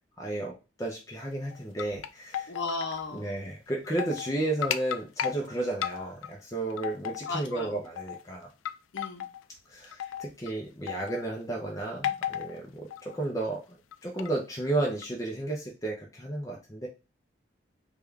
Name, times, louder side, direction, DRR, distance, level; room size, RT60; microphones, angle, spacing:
voice 1, 0.2-2.5 3.1-8.5 9.7-13.8 14.0-16.9, right 2 dB, 15° left, -1 dB, 0.5 m, -33 dB
sound 1, 1.5-3.1 3.4-3.5 3.8-4.3 4.6-5.4 5.8-6.3 6.7-7.6 8.0-8.2 8.6-9.4 9.9-10.5 10.9-11.3 12.0-12.6 12.9-13.2 13.9-14.3 15.0-15.1, left 10 dB, 90° left, 0.3 m, -34 dB
voice 2, 2.5-3.4 7.3-7.8 8.9-9.2 10.0-10.1, left 3 dB, 70° left, 3 dB, 0.7 m, -36 dB
3.6 x 2.3 x 3.2 m, 0.30 s
head